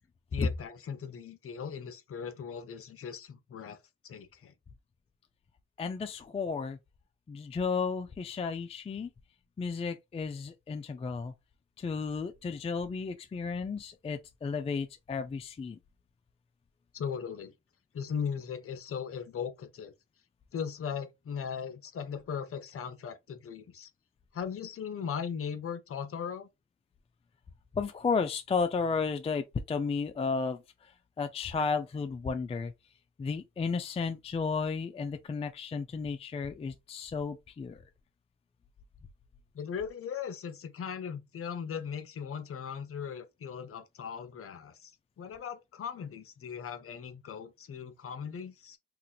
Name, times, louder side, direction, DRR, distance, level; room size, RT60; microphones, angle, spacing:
voice 1, 0.3-3.8 4.0-4.5 16.9-17.5 17.9-19.9 20.5-23.9 24.3-26.5 39.5-44.9 45.2-48.8, left 7 dB, 50° left, 0.8 m, -38 dB
voice 2, 5.8-6.8 7.3-9.1 9.6-11.3 11.8-15.8 27.7-32.7 33.2-37.8, left 5 dB, 20° left, 0.4 m, -33 dB
2.8 x 2.5 x 3.8 m
cardioid pair, 90°, 30 cm